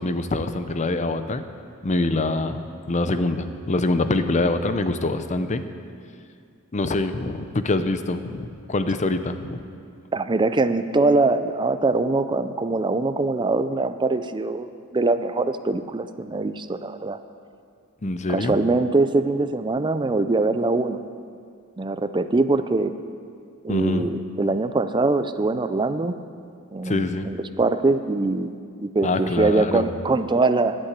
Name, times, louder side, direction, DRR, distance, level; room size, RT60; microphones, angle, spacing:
voice 1, 0.0-1.4 1.8-5.6 6.7-9.6 18.0-18.6 23.7-24.0 26.8-27.3 29.0-29.9, left 2 dB, 35° left, 9 dB, 0.6 m, -24 dB
voice 2, 10.1-17.2 18.3-21.0 21.8-22.9 23.6-26.1 26.7-30.8, right 3 dB, 20° right, 11 dB, 0.4 m, -23 dB
11.5 x 8.9 x 8.2 m, 2.3 s
head